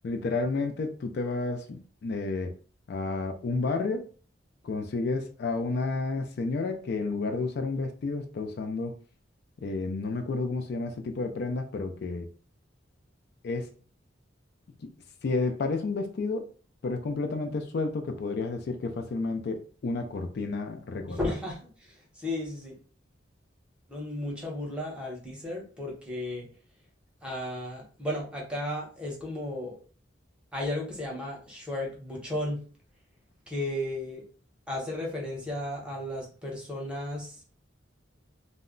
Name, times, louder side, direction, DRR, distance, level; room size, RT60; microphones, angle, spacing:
voice 1, 0.0-2.5 2.9-4.1 4.6-8.9 9.6-12.3 13.4-13.7 15.2-16.5 16.8-21.2, left 3 dB, 55° left, 5 dB, 0.4 m, -31 dB
voice 2, 21.1-22.8 23.9-26.5 27.2-29.8 30.5-32.7 33.5-34.2 34.7-37.4, left 1 dB, 5° right, -2 dB, 0.8 m, -34 dB
2.1 x 2.1 x 3.6 m, 0.40 s
head